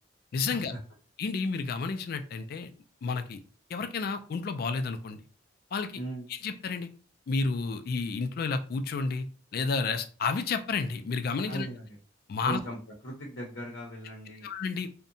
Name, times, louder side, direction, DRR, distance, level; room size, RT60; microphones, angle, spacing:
voice 1, 0.3-0.7 1.2-2.7 3.0-3.4 3.7-5.2 5.7-6.0 6.3-6.9 7.3-9.3 9.5-11.7 12.3-12.6 14.4-14.9, left 4 dB, 55° left, 9 dB, 0.3 m, -31 dB
voice 2, 5.9-6.3 11.5-11.8 12.4-12.8 13.0-14.5, right 1 dB, 75° left, -2 dB, 0.7 m, -37 dB
2.7 x 2.1 x 2.6 m, 0.39 s
head